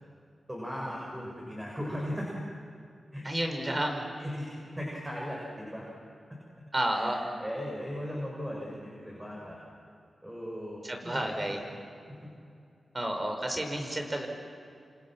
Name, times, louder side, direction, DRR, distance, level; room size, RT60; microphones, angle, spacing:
voice 1, 0.5-2.3 3.1-3.2 4.2-4.5 4.8-5.8 6.9-9.6 10.2-11.7 12.1-12.2, equal, 10° right, -3 dB, 6.7 m, -37 dB
voice 2, 3.2-4.0 6.7-7.2 10.8-11.6 12.9-14.3, right 1 dB, 25° right, 4 dB, 5.2 m, -31 dB
29.0 x 27.0 x 6.2 m, 2.4 s
cardioid pair, 70°, 0 cm